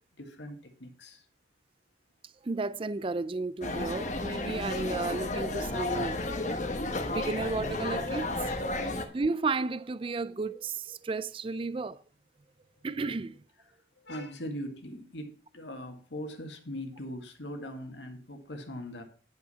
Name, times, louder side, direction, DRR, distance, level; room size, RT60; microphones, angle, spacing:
voice 1, 0.2-1.2 14.0-19.0, equal, 80° left, 2.0 m, -40 dB
voice 2, 2.4-6.2 7.0-8.3 8.8-12.0 12.8-13.4, right 3 dB, 30° right, 0.4 m, -33 dB
sound 1, 3.6-9.0, left 2 dB, 40° left, 1.2 m, -32 dB
10.5 x 5.9 x 5.6 m
head